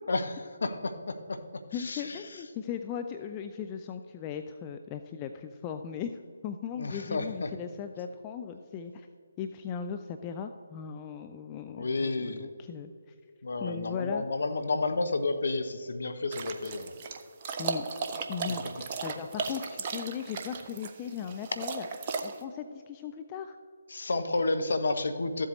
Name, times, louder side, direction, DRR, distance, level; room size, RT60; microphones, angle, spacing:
voice 1, 0.6-2.2 6.8-7.5 11.8-12.5 13.4-16.9 23.9-25.5, left 3 dB, 55° left, 8 dB, 0.8 m, -31 dB
voice 2, 1.7-9.1 9.4-13.1 13.6-14.2 17.6-17.8 18.3-23.6, left 7 dB, 20° left, 7 dB, 0.3 m, -38 dB
Dog lapping up water, 16.3-22.4, right 5 dB, 30° right, 0.6 m, -36 dB
13.5 x 7.7 x 3.1 m, 2.2 s
figure-of-eight pair, 145°, 0 cm